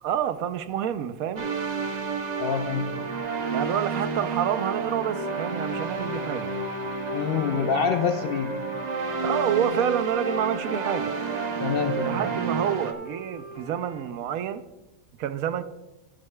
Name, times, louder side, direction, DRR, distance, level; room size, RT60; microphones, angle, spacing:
voice 1, 0.0-1.5 3.5-6.5 9.2-11.2 12.0-14.7 15.2-15.6, right 9 dB, 85° right, 1.0 m, -28 dB
sound 1, 1.4-12.9, right 4 dB, 40° right, 0.6 m, -30 dB
voice 2, 2.4-2.9 7.1-8.5 11.6-12.1, left 6 dB, 65° left, 0.6 m, -26 dB
Wind instrument woodwind instrument, 6.2-9.8 10.1-14.1, right 3 dB, 25° right, 2.3 m, -40 dB
12.5 x 10.5 x 2.2 m
omnidirectional pair, 1.5 m